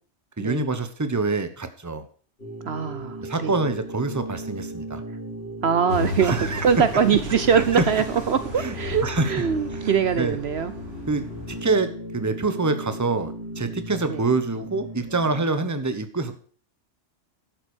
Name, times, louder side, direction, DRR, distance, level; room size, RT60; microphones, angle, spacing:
voice 1, 0.4-2.1 3.2-5.0 6.2-6.6 7.5-7.9 8.6-8.7 9.0-9.3 9.7-10.4 11.1-16.4, right 3 dB, 15° right, 10 dB, 1.1 m, -26 dB
sound 1, 2.4-15.4, right 1 dB, 60° left, 3.3 m, -37 dB
voice 2, 2.7-3.5 5.6-10.7 14.1-14.2, right 7 dB, 60° right, 12 dB, 1.0 m, -22 dB
sound 2, 5.9-11.7, left 2 dB, 75° right, 3.4 m, -34 dB
12.0 x 7.9 x 6.3 m, 0.43 s
omnidirectional pair, 1.2 m